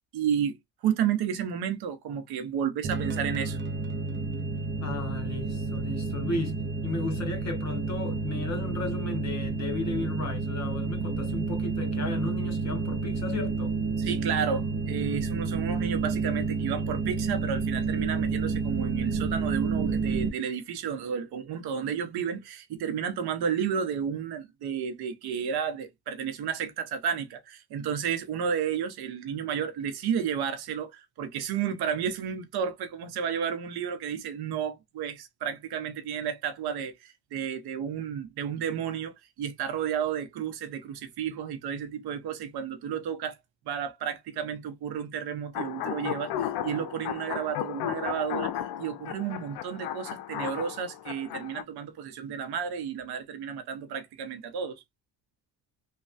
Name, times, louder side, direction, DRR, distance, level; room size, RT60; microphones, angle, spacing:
voice 1, 0.1-0.6 0.8-3.6 14.0-43.4 43.7-54.8, right 8 dB, 70° right, 0.8 m, -32 dB
sound 1, 2.8-20.3, right 4 dB, 30° right, 0.5 m, -30 dB
voice 2, 4.8-13.8, left 3 dB, 45° left, 1.2 m, -34 dB
sound 2, 45.5-51.6, left 11 dB, 80° left, 0.5 m, -34 dB
3.1 x 2.2 x 2.5 m
cardioid pair, 100°, 39 cm